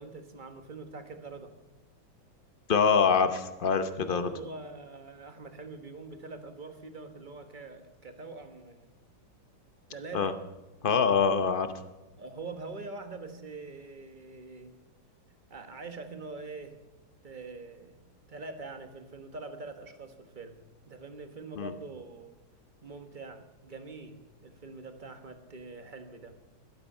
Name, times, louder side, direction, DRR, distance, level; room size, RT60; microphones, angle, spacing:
voice 1, 0.0-1.5 4.1-8.9 9.9-10.4 12.2-14.8 15.5-16.8 17.2-18.0 18.3-22.3 22.8-26.3, right 3 dB, 30° right, 7 dB, 1.2 m, -44 dB
voice 2, 2.7-4.3 10.1-10.3 10.8-11.7 21.6-21.7, left 6 dB, 60° left, 10 dB, 0.5 m, -24 dB
13.0 x 12.0 x 5.5 m, 1.1 s
omnidirectional pair, 2.2 m